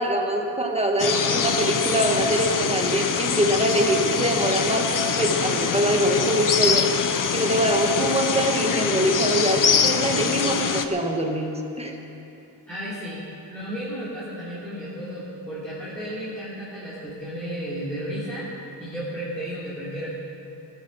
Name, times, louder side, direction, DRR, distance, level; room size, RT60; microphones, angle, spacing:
voice 1, 0.0-4.9 5.2-6.9 7.3-12.0, right 1 dB, 15° right, 1 dB, 1.4 m, -23 dB
sound 1, 1.0-10.9, left 6 dB, 45° left, 0.7 m, -24 dB
voice 2, 12.7-18.5 18.8-20.1, equal, 5° left, -11 dB, 3.3 m, -33 dB
18.5 x 10.0 x 6.4 m, 2.8 s
wide cardioid pair, 175°, 43 cm